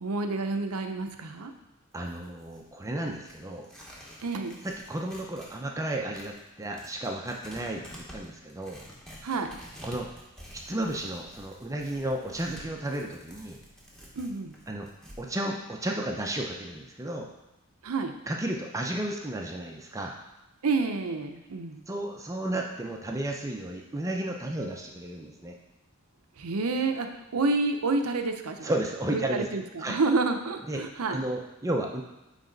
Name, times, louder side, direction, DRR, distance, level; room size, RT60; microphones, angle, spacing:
voice 1, 0.0-1.5 4.2-4.6 9.2-9.6 14.2-14.5 17.8-18.2 20.6-21.8 26.4-28.7 29.1-31.2, right 3 dB, 90° right, 6 dB, 0.6 m, -29 dB
Tearing, 1.9-5.6 5.9-15.2, equal, 5° left, 1.1 m, -49 dB
voice 2, 1.9-3.7 4.6-8.8 9.8-10.1 10.5-13.6 14.7-14.9 15.2-17.3 18.3-20.2 21.9-25.6 28.6-29.5 29.8-30.0 30.6-30.8 31.1-32.0, right 1 dB, 15° right, 1 dB, 0.5 m, -33 dB
9.0 x 3.3 x 3.9 m, 0.98 s
head